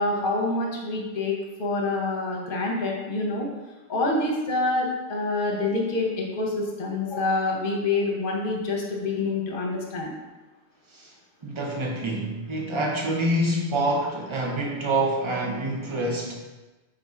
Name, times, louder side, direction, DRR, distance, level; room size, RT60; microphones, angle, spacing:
voice 1, 0.0-3.5 3.9-10.1, left 2 dB, 55° left, 0 dB, 0.9 m, -26 dB
voice 2, 11.4-16.4, right 1 dB, 40° right, -1 dB, 0.4 m, -26 dB
3.8 x 2.4 x 4.2 m, 1.2 s
omnidirectional pair, 1.1 m